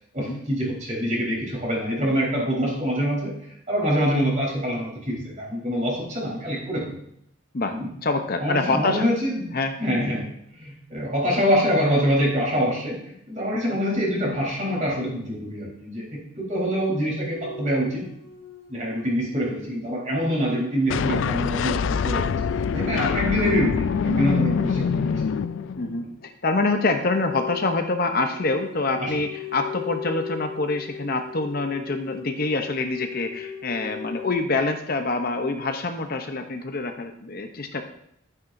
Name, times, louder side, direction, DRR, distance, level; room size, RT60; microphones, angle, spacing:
voice 1, 0.1-3.3 3.7-7.0 7.7-7.9 8.4-9.5 9.8-10.3 10.5-18.0 18.7-22.3 22.7-25.1 26.0-26.1 29.0-29.1, equal, 35° right, -3 dB, 3.8 m, -25 dB
voice 2, 8.0-9.0 9.5-9.7 13.7-13.8 24.4-24.6 25.8-37.8, left 3 dB, 45° left, 5 dB, 0.7 m, -26 dB
sound 1, 16.7-25.8 27.0-34.3, left 7 dB, 85° left, 3.3 m, -39 dB
sound 2, 20.9-26.0, left 6 dB, 65° left, 0.3 m, -24 dB
12.0 x 9.5 x 2.6 m, 0.74 s
head